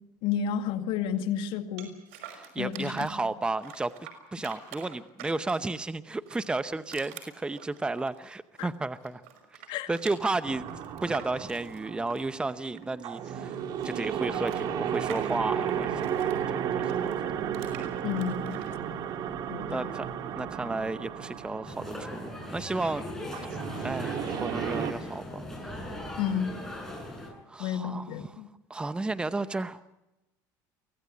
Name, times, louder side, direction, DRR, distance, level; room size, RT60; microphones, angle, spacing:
voice 1, 0.2-1.9 2.6-3.1 8.6-8.7 9.7-9.9 18.0-18.6 19.5-19.9 26.2-26.6 27.6-28.5, left 8 dB, 70° left, 4 dB, 2.1 m, -31 dB
sound 1, 1.8-3.2 3.6-5.8 6.2-8.8 9.0-13.2 13.5-16.4 16.8-18.7, right 9 dB, 90° right, 5.6 m, -47 dB
voice 2, 2.3-3.9 4.3-9.2 9.9-10.7 11.0-13.6 13.8-17.5 19.5-20.1 20.4-23.1 23.8-25.8 27.2-28.4 28.7-29.8, right 3 dB, 10° right, 12 dB, 0.8 m, -33 dB
sound 2, 10.4-24.9, right 8 dB, 55° right, 1.9 m, -34 dB
sound 3, 21.6-27.3, left 1 dB, 5° left, 7.9 m, -39 dB
24.5 x 16.0 x 9.4 m, 0.96 s
supercardioid pair, 110°, 8 cm